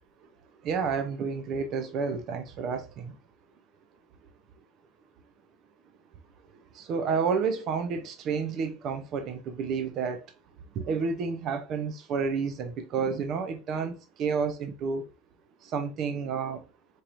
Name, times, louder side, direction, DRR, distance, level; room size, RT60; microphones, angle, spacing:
voice 1, 0.6-3.1 6.7-10.3 10.8-15.1 15.6-16.6, right 5 dB, 50° right, 0.6 m, -30 dB
4.5 x 3.0 x 2.5 m
supercardioid pair, 110°, 0 cm